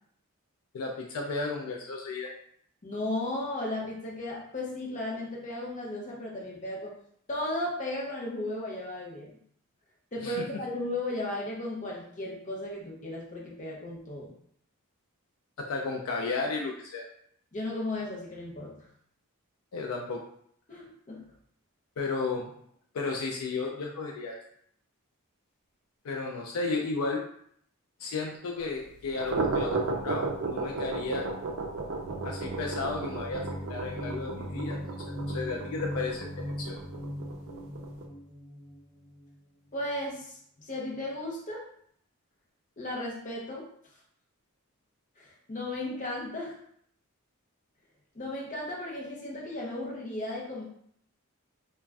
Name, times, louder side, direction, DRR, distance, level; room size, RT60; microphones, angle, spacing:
voice 1, 0.7-2.3 10.2-10.4 15.6-17.1 19.7-20.2 22.0-22.5 22.9-24.4 26.0-27.3 28.0-31.3 32.2-33.4 33.7-34.8 35.1-36.3 36.6-36.8, left 3 dB, 75° left, 0 dB, 0.4 m, -33 dB
voice 2, 2.8-6.9 7.3-9.3 10.1-14.3 17.5-18.8 20.7-21.2 39.7-41.6 42.8-43.7 45.2-46.6 48.1-50.6, left 1 dB, 35° left, -2 dB, 0.6 m, -35 dB
sound 1, 29.0-38.1, right 3 dB, 55° right, 0.4 m, -34 dB
sound 2, 32.0-39.4, equal, 30° right, 0.9 m, -39 dB
2.4 x 2.1 x 3.3 m, 0.66 s
head